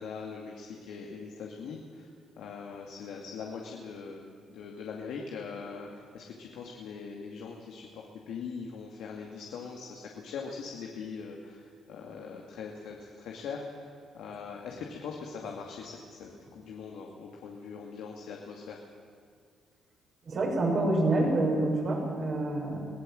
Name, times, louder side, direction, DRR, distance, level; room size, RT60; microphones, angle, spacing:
voice 1, 0.0-2.1 2.4-13.9 14.1-18.8, left 5 dB, 85° left, 0 dB, 2.3 m, -41 dB
voice 2, 20.3-22.8, right 2 dB, 55° right, -2 dB, 7.5 m, -27 dB
23.0 x 16.5 x 7.8 m, 2.2 s
cardioid pair, 90°, 0 cm